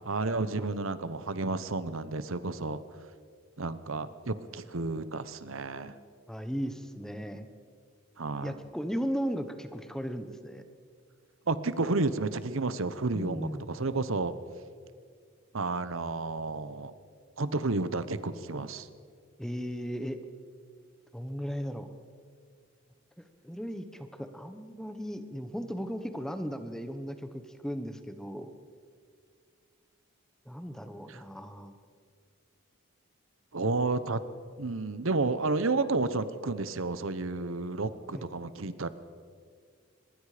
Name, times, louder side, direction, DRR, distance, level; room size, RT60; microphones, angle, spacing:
voice 1, 0.0-2.8 3.6-6.0 8.2-8.5 11.5-14.3 15.5-16.9 17.4-18.9 31.1-31.2 33.5-34.2 34.6-38.9, right 3 dB, 70° right, 13 dB, 0.9 m, -31 dB
voice 2, 6.3-7.5 8.4-10.6 13.1-13.7 19.4-20.2 21.1-21.9 23.2-28.5 30.4-31.8 38.1-38.2, equal, 5° left, 8 dB, 1.1 m, -36 dB
24.5 x 21.0 x 5.1 m, 2.1 s
head